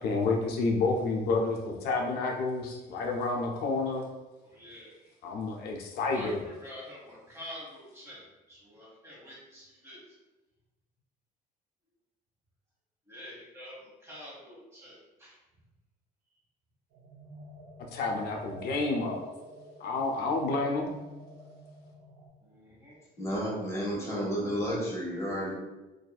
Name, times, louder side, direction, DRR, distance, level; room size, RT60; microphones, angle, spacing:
voice 1, 0.0-4.0 5.2-6.4 17.8-19.2 19.8-20.9, left 3 dB, 70° left, 1 dB, 0.4 m, -29 dB
voice 2, 4.4-5.1 5.9-10.1 13.1-15.3 22.4-23.0, equal, 15° right, -7 dB, 1.3 m, -47 dB
sound 1, 16.9-22.3, right 1 dB, 60° right, 0.6 m, -48 dB
voice 3, 23.2-25.5, equal, 15° left, -5 dB, 1.0 m, -31 dB
2.6 x 2.3 x 2.3 m, 1.1 s
cardioid pair, 110°, 17 cm